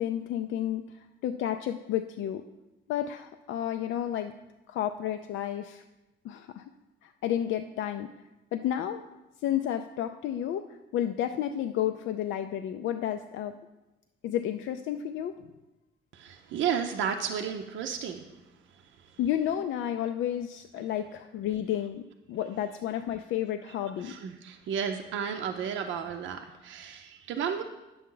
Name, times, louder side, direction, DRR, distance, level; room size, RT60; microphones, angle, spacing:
voice 1, 0.0-2.4 2.9-4.3 4.7-5.8 6.2-6.6 7.0-8.1 8.5-9.0 9.4-13.6 14.2-15.5 19.2-22.0 22.3-24.2, left 11 dB, 75° left, 7 dB, 0.4 m, -31 dB
voice 2, 16.1-18.3 18.7-19.2 24.0-27.6, right 7 dB, 75° right, 3 dB, 0.6 m, -33 dB
9.4 x 6.9 x 3.8 m, 1.0 s
cardioid pair, 90°, 20 cm